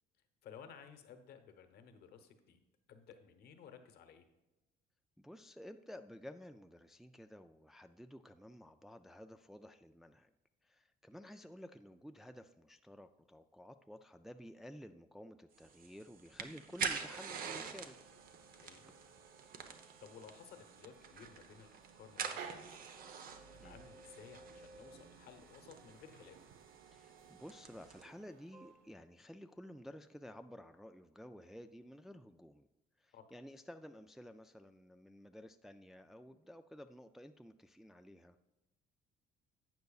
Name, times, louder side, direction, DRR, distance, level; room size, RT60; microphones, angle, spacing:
voice 1, 0.4-2.6 2.9-4.2 18.6-18.9 20.0-22.9 23.2-26.4 33.1-33.3, left 7 dB, 70° left, 8 dB, 1.0 m, -56 dB
voice 2, 5.2-10.3 10.6-18.0 23.6-23.8 26.9-32.7 33.0-38.4, equal, ahead, 7 dB, 0.3 m, -53 dB
sound 1, 15.6-28.0, right 6 dB, 60° right, 0.9 m, -47 dB
sound 2, 17.7-29.0, right 6 dB, 90° right, 0.8 m, -57 dB
sound 3, 23.0-25.1 25.8-27.8 28.5-28.7, right 1 dB, 20° right, 1.5 m, -60 dB
12.0 x 7.9 x 2.4 m, 0.97 s
cardioid pair, 110°, 17 cm